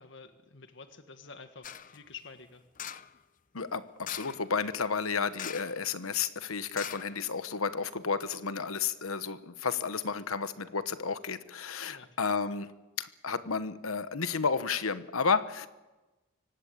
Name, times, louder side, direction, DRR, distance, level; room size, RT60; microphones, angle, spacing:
voice 1, 0.0-2.7 11.8-12.1, left 5 dB, 60° left, 8 dB, 1.6 m, -49 dB
sound 1, 1.6-2.0 2.8-3.2 4.0-4.5 5.3-5.9 6.1-6.2 6.7-7.6 8.1-8.2, left 9 dB, 40° left, 0.7 m, -42 dB
voice 2, 3.5-12.7 13.0-15.7, left 5 dB, 90° left, 13 dB, 1.2 m, -32 dB
24.0 x 18.0 x 8.4 m, 1.1 s
head